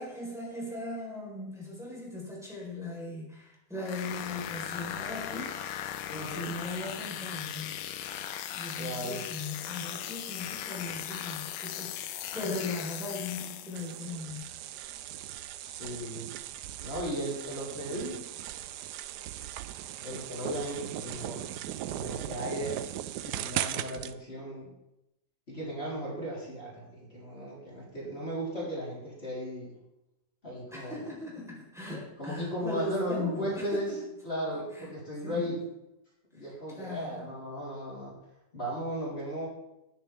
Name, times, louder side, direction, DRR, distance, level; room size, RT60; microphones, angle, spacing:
voice 1, 0.0-5.6 6.3-7.7 8.5-14.5 30.7-34.0 34.7-34.9 35.2-35.5 36.7-37.2, left 2 dB, ahead, -4 dB, 4.2 m, -38 dB
sound 1, 3.8-14.0, left 10 dB, 85° left, 1.4 m, -38 dB
voice 2, 6.1-6.5 8.7-9.2 15.6-16.3 16.8-18.2 20.0-21.4 21.9-22.8 23.2-24.7 25.5-29.7 30.4-31.0 32.2-35.6 36.3-38.1 38.5-39.5, equal, 35° left, -6 dB, 4.2 m, -36 dB
sound 2, 13.7-24.1, right 12 dB, 75° right, 1.1 m, -38 dB
19.0 x 9.3 x 3.6 m, 0.91 s
omnidirectional pair, 1.9 m